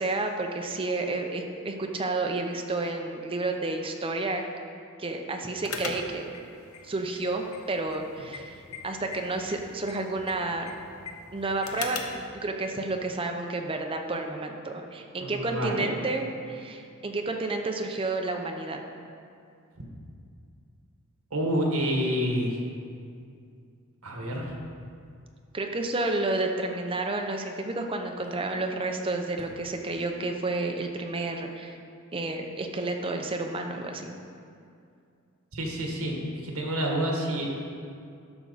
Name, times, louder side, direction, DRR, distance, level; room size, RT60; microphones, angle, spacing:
voice 1, 0.0-4.4 5.0-6.3 6.8-10.7 11.3-18.8 25.5-31.8 32.1-34.1, right 2 dB, 25° right, 3 dB, 0.7 m, -31 dB
sound 1, 5.6-12.3, left 4 dB, 70° left, 0.8 m, -41 dB
voice 2, 15.2-15.9 21.3-22.6 24.0-24.5 35.5-36.2 36.4-37.5, equal, 75° right, 0 dB, 1.5 m, -28 dB
11.5 x 6.2 x 4.1 m, 2.4 s
head